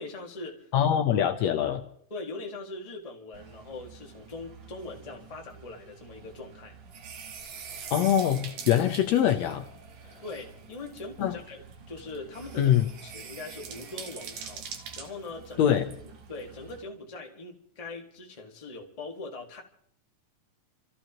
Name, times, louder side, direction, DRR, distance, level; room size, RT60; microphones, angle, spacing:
voice 1, 0.0-0.7 2.1-6.7 10.2-15.8 16.3-19.6, left 3 dB, 20° left, 1.0 m, -41 dB
voice 2, 0.7-1.8 7.9-9.7 11.2-11.3 12.6-12.9 15.6-15.9, left 10 dB, 70° left, 1.8 m, -23 dB
sound 1, 3.3-16.8, right 6 dB, 75° right, 2.8 m, -45 dB
29.5 x 14.5 x 3.0 m
omnidirectional pair, 3.6 m